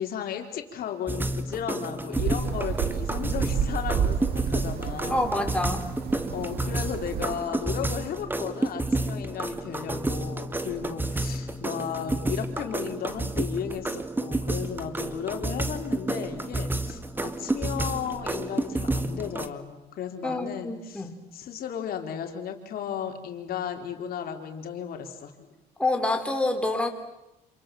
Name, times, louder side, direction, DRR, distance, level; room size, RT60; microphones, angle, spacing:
voice 1, 0.0-5.2 6.3-21.1 21.3-25.5, left 8 dB, 65° left, 5 dB, 3.9 m, -34 dB
sound 1, 1.1-19.5, right 2 dB, 10° right, 1.8 m, -30 dB
sound 2, 2.2-7.4, right 7 dB, 65° right, 2.2 m, -30 dB
voice 2, 5.1-5.9 20.2-21.2 25.8-26.9, left 2 dB, 5° left, 4 dB, 4.1 m, -27 dB
27.5 x 27.5 x 7.7 m, 0.89 s
cardioid pair, 110°, 17 cm